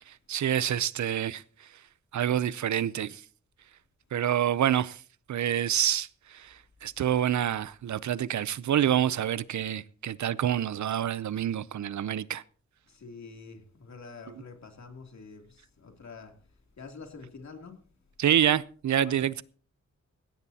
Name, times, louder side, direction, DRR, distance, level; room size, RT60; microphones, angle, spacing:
voice 1, 0.0-1.7 2.1-3.2 4.1-5.0 5.3-12.4 18.2-19.4, right 10 dB, 70° right, 0.6 m, -27 dB
voice 2, 12.9-16.3 16.8-17.8 19.0-19.2, left 4 dB, 65° left, 2.9 m, -46 dB
18.0 x 16.5 x 2.8 m
wide cardioid pair, 100°, 30 cm